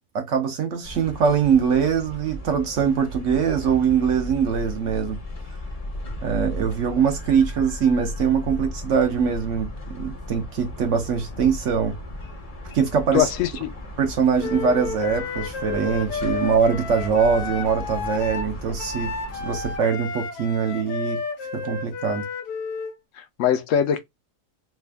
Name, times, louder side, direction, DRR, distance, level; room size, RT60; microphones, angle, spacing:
voice 1, 0.1-5.2 6.2-9.7 9.9-11.9 12.7-13.3 14.0-19.1 19.4-21.2 21.6-22.2, right 6 dB, 60° right, 0.9 m, -22 dB
sound 1, 0.8-19.8, equal, 35° left, 0.6 m, -36 dB
voice 2, 13.1-13.7 23.2-24.0, left 9 dB, 65° left, 0.8 m, -22 dB
Wind instrument woodwind instrument, 14.4-22.9, left 5 dB, 85° left, 1.3 m, -32 dB
3.4 x 2.3 x 3.3 m
omnidirectional pair, 1.7 m